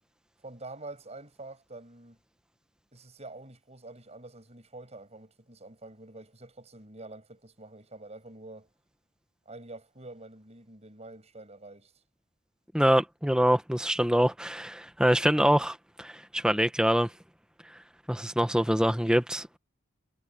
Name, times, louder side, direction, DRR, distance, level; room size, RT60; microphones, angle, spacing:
voice 1, 0.4-2.2 2.9-8.7 9.5-11.9, right 2 dB, 35° right, 7.2 m, -46 dB
voice 2, 12.7-17.1 18.1-19.6, equal, 5° right, 1.2 m, -25 dB
head